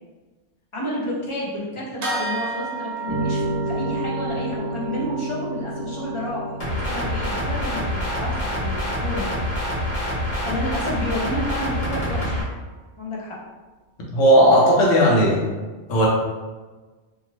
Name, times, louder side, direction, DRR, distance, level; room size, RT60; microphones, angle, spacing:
voice 1, 0.7-3.4 3.7-9.3 10.4-12.4 13.0-13.3, left 1 dB, 35° left, -5 dB, 0.5 m, -30 dB
sound 1, 2.0-11.8, right 4 dB, 65° right, 0.9 m, -36 dB
sound 2, 3.1-9.6, right 1 dB, 20° right, 0.9 m, -31 dB
sound 3, 6.6-12.4, equal, 55° left, 1.1 m, -26 dB
voice 2, 14.1-15.4 15.9-16.1, equal, 80° left, -3 dB, 1.1 m, -15 dB
2.6 x 2.5 x 2.9 m, 1.3 s
omnidirectional pair, 1.3 m